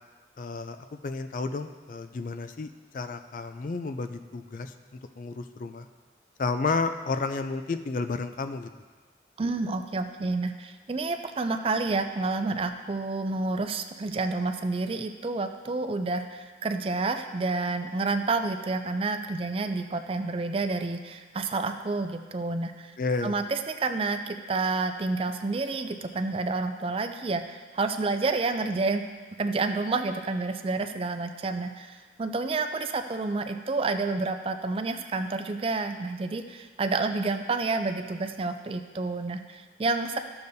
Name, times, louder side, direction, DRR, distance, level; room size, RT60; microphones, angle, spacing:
voice 1, 0.4-5.9 6.4-8.7 23.0-23.4, left 4 dB, 45° left, 9 dB, 0.4 m, -32 dB
voice 2, 9.4-22.9 23.2-29.0 29.4-40.2, right 3 dB, 30° right, 7 dB, 0.4 m, -29 dB
13.0 x 6.9 x 2.7 m, 1.4 s
head